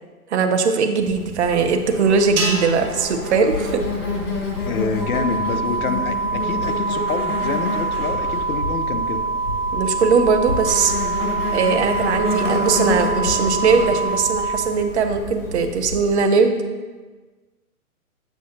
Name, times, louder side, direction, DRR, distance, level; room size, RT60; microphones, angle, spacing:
voice 1, 0.3-3.8 9.7-10.9 11.5-16.6, right 5 dB, 50° right, 6 dB, 0.8 m, -20 dB
Insect, 1.0-16.2, left 2 dB, 85° left, 2.3 m, -28 dB
sound 1, 2.4-4.8, right 3 dB, 70° right, 1.5 m, -30 dB
voice 2, 4.6-9.3, left 5 dB, 65° left, 8 dB, 0.8 m, -27 dB
sound 2, 5.0-14.6, right 4 dB, 25° right, 0.4 m, -25 dB
8.0 x 6.2 x 2.8 m, 1.3 s
figure-of-eight pair, 125°, 45 cm